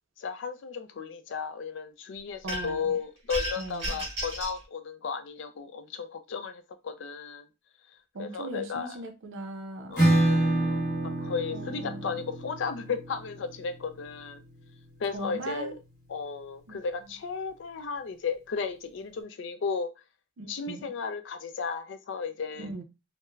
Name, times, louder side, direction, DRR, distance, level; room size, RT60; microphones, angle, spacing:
voice 1, 0.2-7.5 8.2-9.0 9.9-10.8 11.2-14.4 15.0-15.8 16.1-19.9 20.5-22.7, left 5 dB, 60° left, 0.3 m, -34 dB
voice 2, 2.4-3.0 3.6-3.9 8.1-10.1 11.5-12.2 15.1-15.8 16.7-16.8 20.4-20.9 22.6-22.8, right 2 dB, 75° right, 0.5 m, -39 dB
sound 1, 2.5-2.9 3.3-4.6, equal, 30° right, 1.5 m, -33 dB
Acoustic guitar / Strum, 10.0-15.4, right 1 dB, 15° left, 1.3 m, -28 dB
3.1 x 2.1 x 2.3 m
head